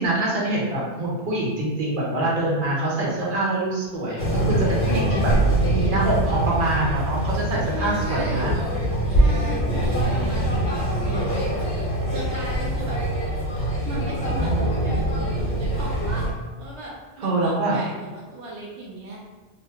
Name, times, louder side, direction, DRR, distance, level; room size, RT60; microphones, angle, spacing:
voice 1, 0.0-5.3 5.7-8.5 14.4-15.0 17.2-17.8, right 2 dB, 50° right, -5 dB, 0.9 m, -25 dB
sound 1, 4.2-16.3, right 1 dB, 50° left, 0.7 m, -23 dB
voice 2, 7.7-8.5 9.1-13.0 13.9-16.3 16.6-16.9 17.2-19.2, right 1 dB, 75° right, -5 dB, 0.9 m, -36 dB
2.9 x 2.1 x 3.4 m, 1.2 s
omnidirectional pair, 1.2 m